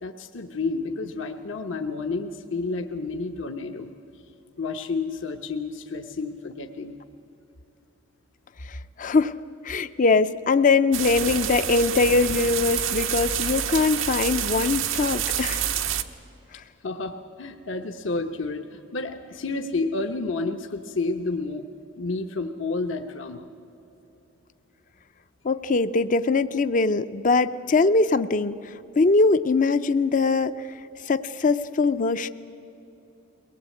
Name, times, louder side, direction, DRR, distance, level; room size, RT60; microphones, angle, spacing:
voice 1, 0.0-3.9 4.6-7.0 16.8-21.7 22.0-23.5, left 3 dB, 70° left, 4 dB, 0.9 m, -30 dB
voice 2, 8.7-9.4 9.6-15.7 25.4-30.6 31.1-32.3, left 3 dB, 40° left, 12 dB, 0.5 m, -22 dB
sound 1, 10.9-16.0, right 9 dB, 85° right, 1.0 m, -28 dB
22.5 x 18.5 x 8.3 m, 3.0 s
head